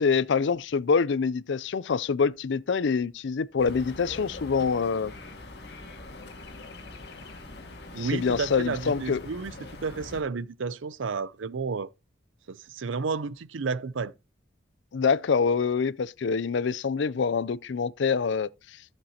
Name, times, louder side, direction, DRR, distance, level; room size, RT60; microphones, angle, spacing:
voice 1, 0.0-5.1 8.0-9.2 14.9-18.5, left 5 dB, 75° left, 0.4 m, -25 dB
sound 1, 3.6-10.2, left 2 dB, 55° left, 1.9 m, -43 dB
voice 2, 7.9-11.9 12.5-14.1, right 4 dB, 90° right, 0.5 m, -32 dB
14.0 x 7.3 x 2.8 m
head